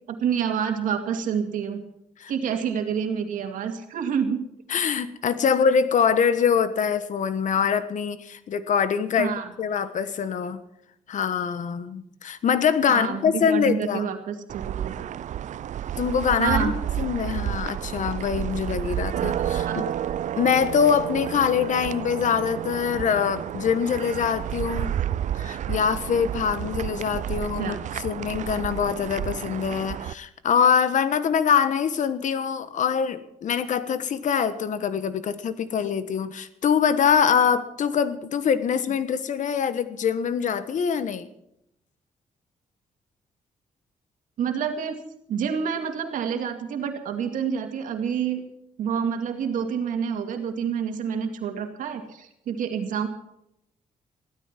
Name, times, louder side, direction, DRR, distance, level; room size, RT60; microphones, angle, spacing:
voice 1, 0.1-1.8 2.3-4.4 9.2-9.5 12.9-15.0 16.4-16.8 19.6-19.8 27.6-27.8 44.4-45.0 45.3-48.4 48.8-53.1, right 7 dB, 90° right, 6 dB, 2.2 m, -28 dB
voice 2, 4.7-9.3 9.6-10.6 11.1-14.1 16.0-16.7 17.0-19.8 20.3-24.9 25.3-41.3, left 7 dB, 70° left, 12 dB, 1.3 m, -24 dB
sound 1, 14.5-30.1, right 10 dB, 65° right, 0.5 m, -31 dB
16.0 x 13.0 x 5.9 m, 0.79 s
cardioid pair, 80°, 13 cm